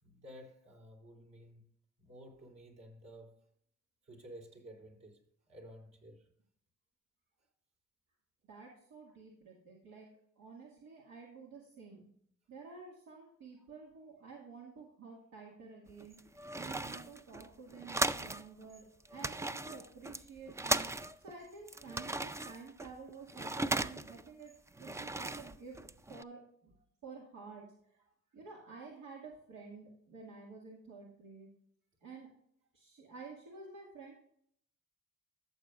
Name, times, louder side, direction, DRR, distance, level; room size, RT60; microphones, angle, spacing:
voice 1, 0.0-1.6 2.0-3.4 4.0-5.2 5.5-6.3 13.6-13.7, equal, 60° right, 3.3 m, -53 dB
voice 2, 8.5-10.1 10.4-12.1 12.5-24.5 24.8-26.7 27.0-27.6 28.3-31.5 32.0-32.3 32.7-34.1, right 4 dB, 90° right, 2.2 m, -51 dB
sound 1, 15.9-18.5 18.7-18.8 19.1-21.3 21.7-24.3 24.7-26.2, right 2 dB, 10° right, 0.3 m, -37 dB
14.5 x 6.7 x 2.5 m
cardioid pair, 90°, 30 cm